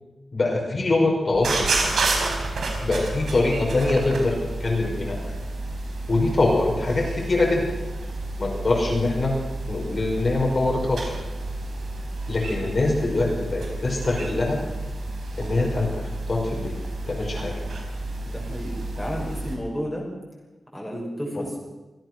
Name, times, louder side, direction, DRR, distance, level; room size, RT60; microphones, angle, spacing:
voice 1, 0.3-2.0 2.8-5.3 6.1-7.6 8.4-9.3 9.7-11.1 12.3-14.6 15.4-16.0 16.3-16.8 17.1-17.5, left 2 dB, 40° left, -1 dB, 5.6 m, -23 dB
sound 1, 1.3-19.6, right 2 dB, 85° right, 4.8 m, -30 dB
voice 2, 18.2-20.1 20.7-21.6, equal, 5° left, -2 dB, 6.1 m, -32 dB
26.5 x 16.5 x 6.3 m, 1.1 s
wide cardioid pair, 135°, 0 cm